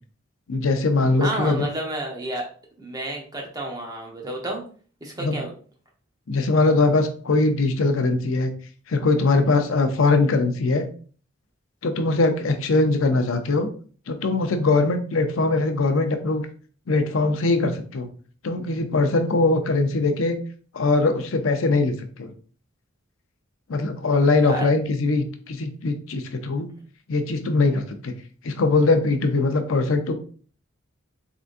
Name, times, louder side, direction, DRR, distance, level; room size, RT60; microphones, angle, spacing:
voice 1, 0.5-1.7 5.2-5.4 6.3-8.5 8.9-10.9 11.8-13.7 14.1-16.5 16.9-18.1 18.4-20.4 20.7-22.3 23.7-26.7 27.1-28.1 28.4-30.1, left 3 dB, 80° left, 6 dB, 0.6 m, -21 dB
voice 2, 1.2-2.4 2.8-4.6 5.0-5.5 24.4-24.7, right 1 dB, 20° right, -1 dB, 0.9 m, -30 dB
3.8 x 3.5 x 2.5 m, 0.42 s
head